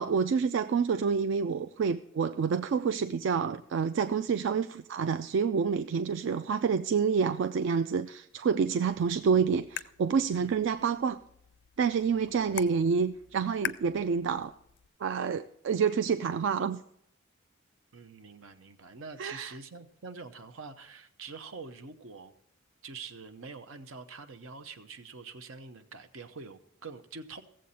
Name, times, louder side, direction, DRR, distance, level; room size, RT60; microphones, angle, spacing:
voice 1, 0.0-11.2 11.8-14.5 15.0-16.8 19.2-19.5, right 6 dB, 60° right, 10 dB, 0.3 m, -28 dB
sound 1, 8.9-14.9, left 10 dB, 55° left, 0.4 m, -44 dB
voice 2, 17.9-22.3 22.8-27.4, right 4 dB, 80° right, 10 dB, 0.8 m, -45 dB
16.0 x 7.6 x 4.2 m, 0.72 s
head